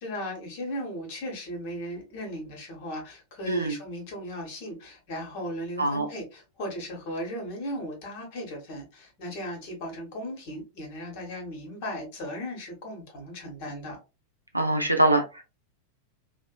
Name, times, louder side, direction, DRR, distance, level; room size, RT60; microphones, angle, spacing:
voice 1, 0.0-14.0, equal, 45° left, 1.0 m, -36 dB
voice 2, 3.5-3.8 5.8-6.1 14.5-15.4, right 1 dB, 85° right, 0.5 m, -23 dB
2.7 x 2.1 x 2.2 m
figure-of-eight pair, 90°, 0 cm